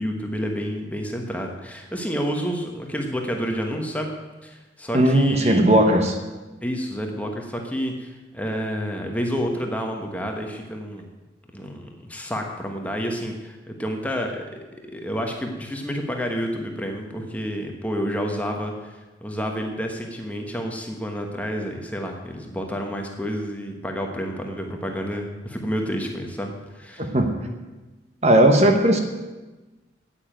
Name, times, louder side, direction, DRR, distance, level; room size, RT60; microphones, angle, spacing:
voice 1, 0.0-4.1 4.4-5.7 6.6-11.0 11.5-14.4 14.9-27.1, equal, 10° left, 2 dB, 1.2 m, -29 dB
voice 2, 4.9-6.2 27.0-27.4 28.2-29.0, right 1 dB, 35° right, 4 dB, 1.2 m, -17 dB
9.6 x 8.9 x 9.0 m, 1.2 s
head